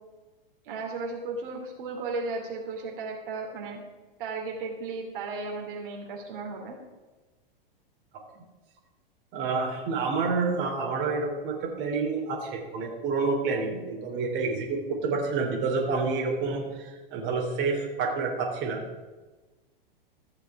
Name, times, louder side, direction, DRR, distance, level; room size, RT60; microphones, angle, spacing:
voice 1, 0.6-3.8 4.2-6.8, right 3 dB, 65° right, 0 dB, 3.0 m, -35 dB
voice 2, 9.3-18.8, right 4 dB, 40° right, -1 dB, 3.1 m, -28 dB
15.0 x 6.7 x 5.9 m, 1.2 s
hypercardioid pair, 120°, 29 cm